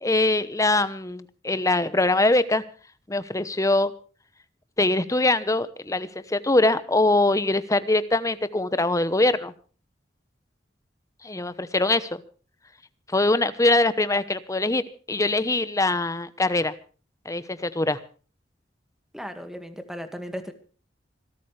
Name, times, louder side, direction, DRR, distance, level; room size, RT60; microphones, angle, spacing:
voice 1, 0.0-2.6 3.1-3.9 4.8-9.5 11.2-12.2 13.1-16.7 17.2-18.0, left 2 dB, 20° left, 14 dB, 1.0 m, -23 dB
voice 2, 19.1-20.5, equal, 5° right, 8 dB, 1.9 m, -36 dB
26.0 x 13.5 x 3.3 m, 0.39 s
head